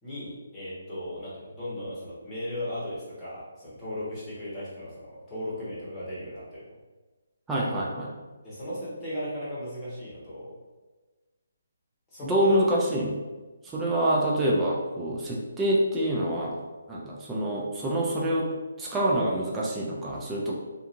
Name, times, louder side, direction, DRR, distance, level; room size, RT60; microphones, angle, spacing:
voice 1, 0.0-6.7 8.4-10.5 12.1-12.6, left 1 dB, 10° left, -11 dB, 1.1 m, -36 dB
voice 2, 7.5-8.1 12.2-13.1 13.6-16.6 16.9-18.5 18.8-20.5, right 1 dB, 10° right, -5 dB, 0.4 m, -26 dB
2.8 x 2.4 x 2.5 m, 1.2 s
hypercardioid pair, 160°, 0 cm